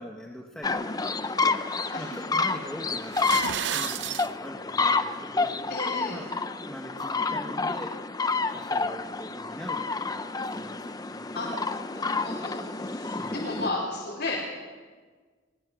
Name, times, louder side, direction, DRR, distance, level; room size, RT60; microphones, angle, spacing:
voice 1, 0.0-1.6 2.0-5.5 6.1-6.4 6.7-7.9 8.5-11.3 13.1-13.5, equal, 5° left, 0 dB, 1.6 m, -43 dB
sound 1, 0.6-13.7, left 4 dB, 20° left, 0.8 m, -29 dB
sound 2, 3.0-4.3, right 9 dB, 90° right, 0.6 m, -31 dB
voice 2, 5.7-6.2 11.3-14.4, left 2 dB, 65° left, -5 dB, 4.9 m, -34 dB
23.0 x 21.0 x 6.4 m, 1.5 s
head